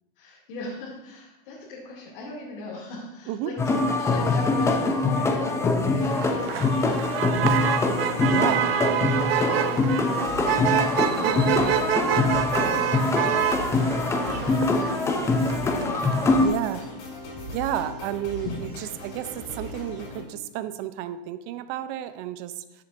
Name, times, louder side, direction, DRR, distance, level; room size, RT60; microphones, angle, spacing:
voice 1, 0.2-3.6 4.0-8.4 8.7-8.8 9.3-11.1 13.0-16.5 18.4-18.7, left 2 dB, 65° left, -6 dB, 2.6 m, -40 dB
sound 1, 3.6-16.5, left 3 dB, 10° left, 0.6 m, -24 dB
Motor vehicle (road), 6.0-16.5, right 10 dB, 90° right, 0.7 m, -27 dB
voice 2, 8.2-8.7 11.2-11.5 16.4-16.8 17.5-22.8, right 12 dB, 40° right, 12 dB, 0.6 m, -31 dB
sound 2, 10.2-20.3, left 2 dB, 45° left, 3.3 m, -39 dB
13.5 x 7.4 x 2.6 m, 0.96 s
supercardioid pair, 140°, 29 cm